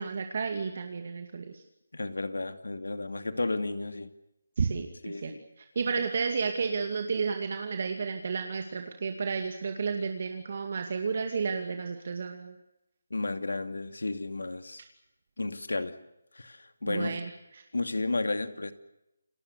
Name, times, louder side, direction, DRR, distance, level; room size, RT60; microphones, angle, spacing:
voice 1, 0.0-1.6 4.6-5.3 5.6-12.6 16.9-17.6, right 5 dB, 50° right, 5 dB, 2.4 m, -32 dB
voice 2, 1.9-4.1 5.0-5.4 6.0-6.1 13.1-14.8 15.4-16.0 16.3-17.2 17.7-18.7, left 2 dB, 90° left, 10 dB, 2.5 m, -32 dB
29.5 x 20.5 x 6.9 m, 0.89 s
figure-of-eight pair, 165°, 0 cm